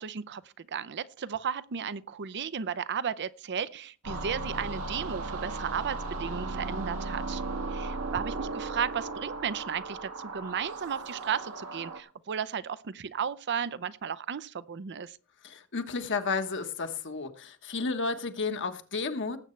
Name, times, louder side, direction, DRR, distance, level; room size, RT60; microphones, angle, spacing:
voice 1, 0.0-7.4 7.7-15.2, right 7 dB, 50° right, 0.6 m, -34 dB
sound 1, 4.0-12.0, right 3 dB, 80° right, 1.6 m, -36 dB
voice 2, 15.4-19.4, left 4 dB, 55° left, 1.3 m, -32 dB
19.0 x 8.0 x 3.2 m
head